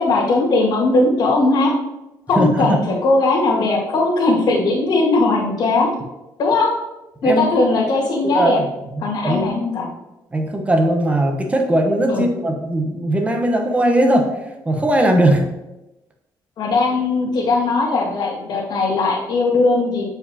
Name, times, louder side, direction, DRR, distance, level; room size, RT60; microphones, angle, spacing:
voice 1, 0.0-1.7 2.3-5.9 6.4-6.7 7.2-8.6 9.0-9.9 12.1-12.2 16.6-20.0, left 3 dB, 65° left, -3 dB, 2.0 m, -18 dB
voice 2, 2.4-2.8 7.2-7.4 8.3-8.7 8.9-9.5 10.3-14.3 14.7-15.4, right 1 dB, 15° right, 3 dB, 1.0 m, -18 dB
7.9 x 4.8 x 2.8 m, 0.96 s
cardioid pair, 110°, 8 cm